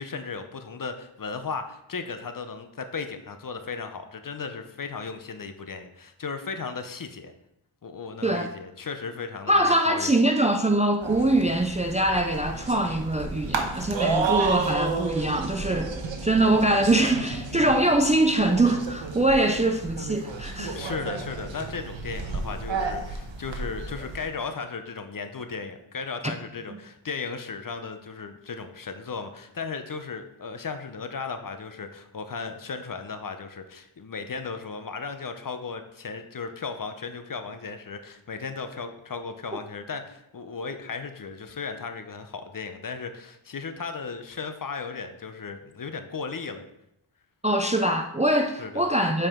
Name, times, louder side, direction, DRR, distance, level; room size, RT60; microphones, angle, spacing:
voice 1, 0.0-7.3 7.8-10.1 17.5-17.6 20.7-46.6 48.6-48.9, left 5 dB, 45° left, 0.6 m, -36 dB
voice 2, 9.5-15.9 16.2-20.8 47.4-49.3, right 1 dB, 15° right, 0.4 m, -23 dB
sound 1, 11.0-24.3, right 4 dB, 70° right, 1.1 m, -32 dB
7.5 x 4.8 x 3.6 m
wide cardioid pair, 95°, 48 cm